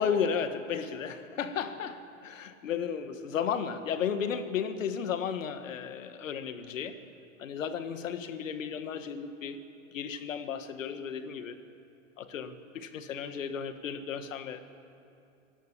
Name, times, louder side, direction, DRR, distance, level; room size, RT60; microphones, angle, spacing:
voice 1, 0.0-7.0 7.4-9.6 9.9-11.6 12.2-14.6, left 7 dB, 75° left, 10 dB, 1.9 m, -34 dB
25.5 x 17.5 x 8.6 m, 2.7 s
hypercardioid pair, 95°, 39 cm